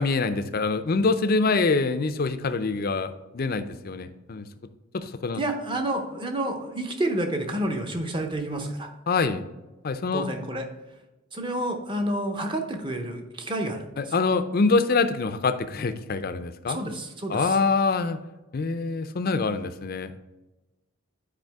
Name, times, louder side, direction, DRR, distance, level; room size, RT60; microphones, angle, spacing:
voice 1, 0.0-3.1 3.3-4.5 4.9-5.4 9.1-9.4 9.8-10.3 14.0-16.8 17.3-18.2 18.5-20.2, left 4 dB, 45° left, 10 dB, 0.5 m, -25 dB
voice 2, 5.4-8.9 10.1-10.6 11.3-14.1 16.7-17.6, right 1 dB, 25° right, 4 dB, 0.8 m, -29 dB
9.1 x 4.9 x 3.5 m, 1.1 s
head